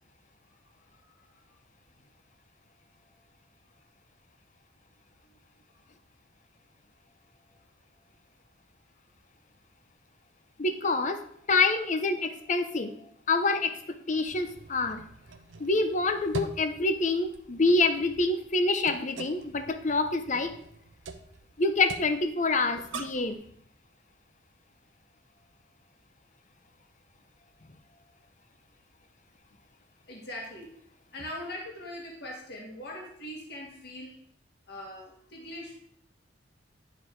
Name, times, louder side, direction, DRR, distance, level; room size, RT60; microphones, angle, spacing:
voice 1, 10.6-11.2 11.5-13.0 13.3-15.0 15.6-20.5 21.6-23.4, left 3 dB, 40° left, 8 dB, 0.8 m, -26 dB
sound 1, 14.2-23.3, right 3 dB, 85° right, 0.7 m, -44 dB
voice 2, 30.1-30.7 31.1-34.2 34.7-35.8, left 1 dB, 60° left, -1 dB, 1.9 m, -41 dB
10.5 x 5.0 x 4.7 m, 0.67 s
head